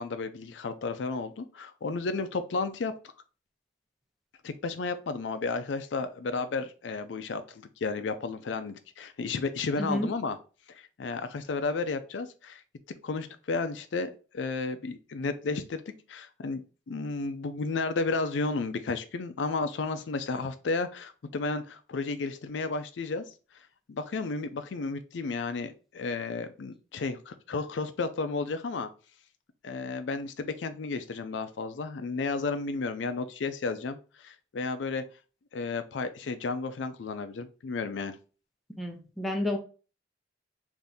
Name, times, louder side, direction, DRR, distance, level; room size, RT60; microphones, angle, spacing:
voice 1, 0.0-2.9 4.4-10.4 10.7-12.6 13.0-15.8 16.1-16.6 16.9-23.2 23.9-28.9 29.6-35.0 35.5-38.1, left 4 dB, 80° left, 0.4 m, -33 dB
voice 2, 9.8-10.1 38.8-39.6, left 1 dB, ahead, 0.7 m, -30 dB
3.5 x 2.6 x 4.0 m
head